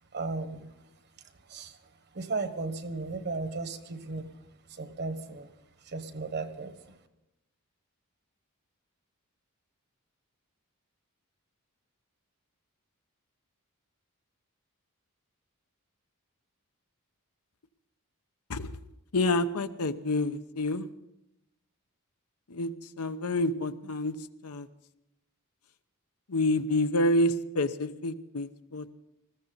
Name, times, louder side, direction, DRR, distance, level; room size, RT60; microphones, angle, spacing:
voice 1, 0.1-0.7 1.5-1.8 2.1-4.3 4.7-5.5 5.9-6.8, right 3 dB, 50° right, 9 dB, 1.3 m, -35 dB
voice 2, 19.1-20.9 22.5-24.2 24.4-24.7 26.3-28.9, left 1 dB, 75° left, 11 dB, 0.8 m, -28 dB
20.0 x 15.0 x 4.0 m, 0.88 s
head